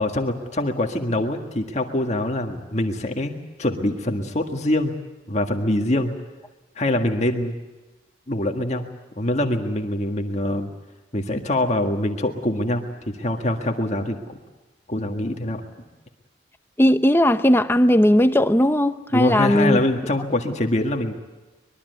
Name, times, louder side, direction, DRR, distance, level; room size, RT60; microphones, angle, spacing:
voice 1, 0.0-4.9 5.3-6.1 6.8-7.6 8.3-8.8 9.2-10.7 11.1-14.4 14.9-15.6 19.1-21.1, left 1 dB, 35° left, 1.8 m, -24 dB
voice 2, 16.8-19.8, left 1 dB, 10° left, 0.7 m, -17 dB
24.0 x 22.5 x 8.0 m
head